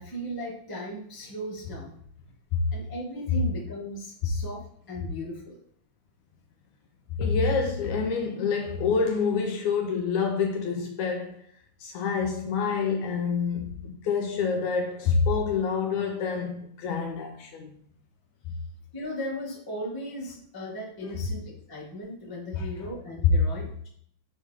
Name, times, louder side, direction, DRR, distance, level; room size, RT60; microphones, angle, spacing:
voice 1, 0.0-1.9 2.7-5.6 18.9-23.9, equal, 10° left, 1.2 m, -37 dB
voice 2, 7.2-11.4 11.8-17.7 21.0-21.2 22.6-22.7, left 5 dB, 75° left, 2.0 m, -27 dB
6.5 x 5.3 x 3.6 m
omnidirectional pair, 3.7 m